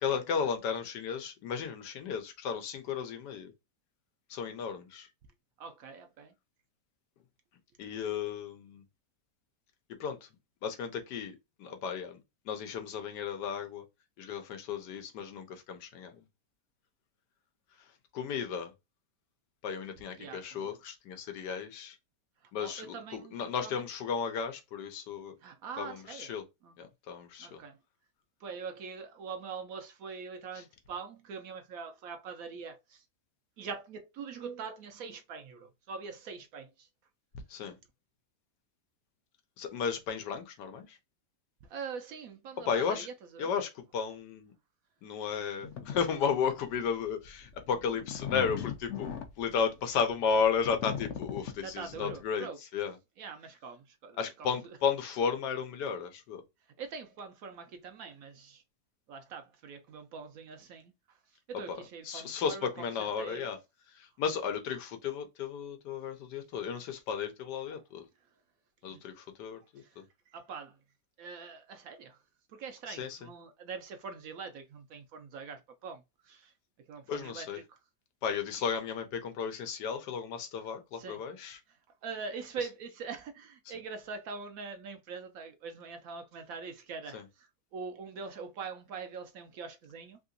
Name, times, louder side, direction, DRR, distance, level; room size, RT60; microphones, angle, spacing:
voice 1, 0.0-3.5 4.3-5.1 7.8-8.8 10.0-10.2 10.6-12.2 12.5-13.8 14.2-16.1 18.1-18.7 19.6-21.9 22.5-25.3 25.8-26.4 26.8-27.6 37.5-37.8 39.6-41.0 42.7-43.1 43.4-44.5 45.0-49.1 49.4-52.5 52.7-52.9 54.2-56.4 61.7-61.8 62.0-63.6 64.0-68.1 68.8-69.6 70.0-70.1 72.9-73.2 77.1-77.6 78.2-81.6 87.1-87.2, left 6 dB, 90° left, 1.3 m, -34 dB
voice 2, 5.6-6.3 20.2-20.8 22.6-23.8 25.4-26.3 26.6-26.7 27.4-27.8 28.4-33.0 33.6-36.9 37.6-37.7 41.7-43.5 51.6-52.6 53.2-54.8 56.8-58.6 59.1-61.2 61.5-63.5 68.9-69.0 69.8-70.8 71.2-72.2 72.5-76.5 76.9-77.8 80.9-81.2 81.7-81.8 82.0-90.2, right 5 dB, 70° right, 0.9 m, -43 dB
sound 1, 45.6-46.0 46.5-46.7 47.2-52.2, left 8 dB, 65° left, 0.7 m, -39 dB
3.4 x 2.8 x 2.5 m
omnidirectional pair, 1.8 m